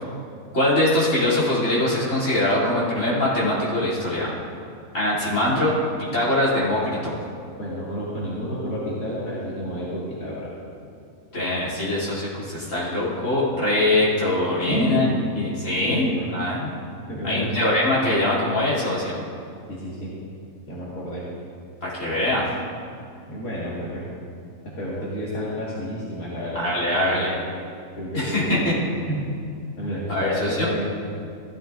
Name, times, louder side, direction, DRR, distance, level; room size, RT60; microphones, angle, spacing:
voice 1, 0.5-4.3 4.9-7.2 11.3-15.0 15.4-16.7 17.2-19.2 21.8-22.5 26.5-27.3 28.1-28.6 29.8-30.7, left 1 dB, 60° left, -8 dB, 3.3 m, -23 dB
voice 2, 7.6-10.5 14.7-15.1 15.8-16.3 17.1-17.6 19.7-20.1 20.7-21.2 23.3-24.1 24.8-27.4 28.0-28.7 29.1-29.2 29.8-30.9, equal, 85° left, -8 dB, 2.3 m, -30 dB
15.5 x 13.0 x 2.5 m, 2.4 s
omnidirectional pair, 1.4 m